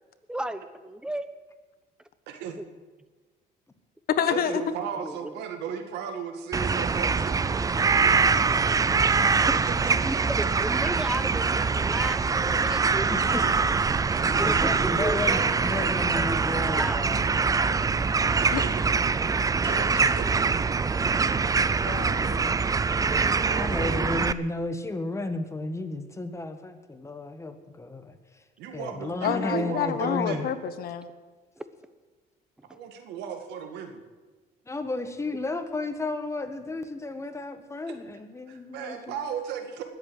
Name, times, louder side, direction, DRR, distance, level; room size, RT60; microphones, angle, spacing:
voice 1, 0.3-1.3 2.5-2.7 4.5-4.6 4.9-5.3 10.0-13.4 14.4-15.4 16.1-16.2 16.8-17.0 21.1-21.3 31.6-31.7, right 1 dB, 5° right, 12 dB, 1.0 m, -34 dB
voice 2, 2.3-2.6 4.3-9.9 13.9-16.0 18.4-18.9 19.6-20.5 23.4-24.0 28.6-30.5 32.7-34.0 37.9-38.0 38.5-39.8, right 7 dB, 85° right, 6 dB, 2.1 m, -37 dB
voice 3, 4.2-4.5 18.5-18.6 21.8-22.5 29.2-31.1, left 9 dB, 60° left, 12 dB, 1.2 m, -28 dB
sound 1, 6.5-24.3, right 5 dB, 20° right, 0.5 m, -24 dB
voice 4, 13.1-13.5 14.4-17.2 23.5-28.4 28.7-30.5 34.7-39.1, left 2 dB, 15° left, 8 dB, 1.5 m, -33 dB
20.0 x 8.0 x 7.9 m, 1.3 s
cardioid pair, 110°, 17 cm